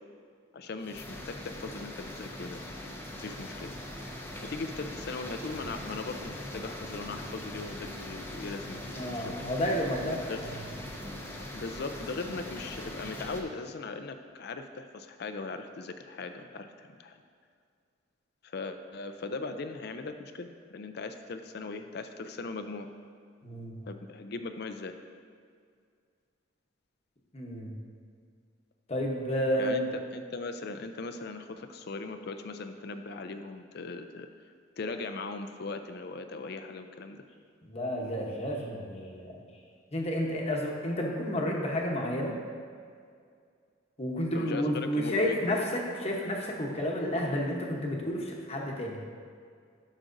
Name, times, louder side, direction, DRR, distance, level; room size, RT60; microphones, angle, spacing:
voice 1, 0.5-2.6 3.2-3.7 4.4-9.5 10.3-10.4 11.5-17.2 18.4-22.9 23.9-25.0 29.6-34.3 34.8-37.2 44.3-45.4, left 3 dB, 55° left, 8 dB, 0.5 m, -39 dB
sound 1, 0.8-13.4, left 1 dB, 10° left, 0.7 m, -41 dB
voice 2, 8.9-10.6 23.4-23.8 27.3-27.7 28.9-29.9 37.6-39.4 39.9-42.4 44.0-49.0, equal, 35° left, 0 dB, 1.0 m, -31 dB
11.5 x 6.1 x 2.6 m, 2.2 s
head